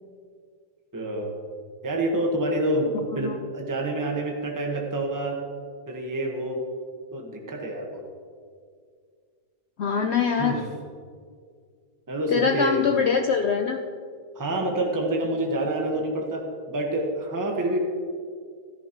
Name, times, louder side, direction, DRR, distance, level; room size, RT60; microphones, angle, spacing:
voice 1, 0.9-1.3 1.8-5.4 5.9-6.6 7.1-8.0 10.4-10.6 12.1-12.8 14.3-17.8, right 1 dB, 15° right, 1 dB, 1.1 m, -27 dB
voice 2, 2.9-3.4 9.8-10.6 12.3-13.8, left 6 dB, 85° left, 5 dB, 0.5 m, -24 dB
15.0 x 13.5 x 3.0 m, 2.1 s
omnidirectional pair, 1.7 m